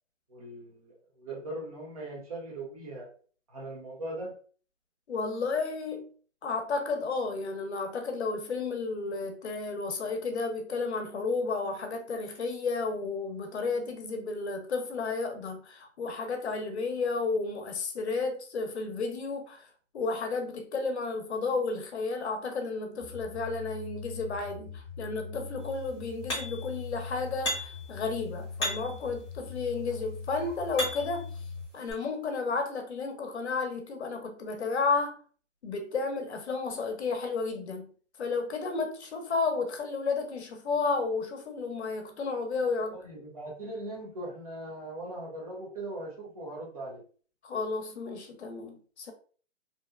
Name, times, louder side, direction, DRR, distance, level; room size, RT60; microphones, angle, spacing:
voice 1, 0.3-3.1 3.5-4.3 42.9-47.0, right 1 dB, 30° right, 0.7 m, -40 dB
voice 2, 5.1-6.0 6.4-19.7 19.9-31.3 31.7-35.2 35.6-37.9 38.2-42.9 47.4-49.1, left 4 dB, 60° left, 0.7 m, -32 dB
sound 1, 23.0-31.7, left 5 dB, 75° right, 0.9 m, -41 dB
sound 2, 26.3-26.7 27.4-27.9 28.6-29.1 29.9-31.2 31.9-32.0, equal, 25° left, 0.7 m, -34 dB
2.8 x 2.1 x 2.2 m
hypercardioid pair, 165°, 37 cm